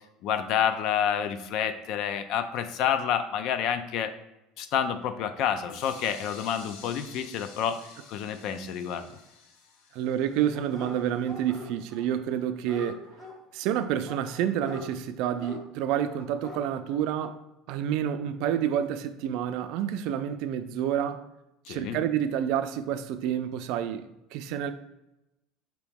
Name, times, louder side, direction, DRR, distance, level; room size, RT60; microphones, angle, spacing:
voice 1, 0.2-4.1 4.6-9.1 21.7-22.0, left 8 dB, 55° left, 0.4 m, -29 dB
sound 1, 5.7-11.5, left 5 dB, 85° left, 0.7 m, -50 dB
voice 2, 9.9-13.0 13.5-17.4 17.7-21.2 21.7-24.1 24.3-24.7, right 10 dB, 65° right, 0.3 m, -29 dB
Dog, 10.5-11.0 11.2-12.0 12.3-13.3 14.0-14.9 15.4-15.6 16.2-16.6 16.9-17.0, left 1 dB, 15° left, 1.0 m, -42 dB
4.7 x 3.0 x 3.5 m
cardioid pair, 150°, 0 cm